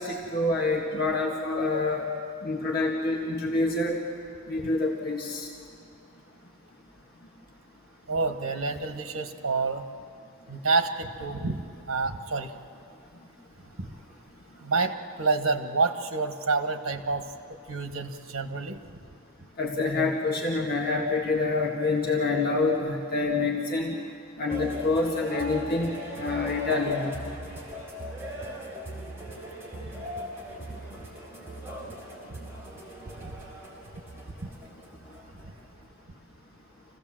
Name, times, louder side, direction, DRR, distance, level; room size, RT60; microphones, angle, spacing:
voice 1, 0.0-2.1 2.4-4.0 4.5-5.5 19.6-24.0 24.4-27.1, left 3 dB, 50° left, -1 dB, 1.8 m, -27 dB
voice 2, 8.1-9.9 10.5-11.6 11.9-12.5 13.8-13.9 14.6-17.3 17.7-18.8 32.3-32.4 33.2-33.3, right 3 dB, 80° right, 7 dB, 1.4 m, -28 dB
sound 1, 24.5-35.9, right 1 dB, 10° right, 4.1 m, -40 dB
27.0 x 16.0 x 7.6 m, 2.5 s
head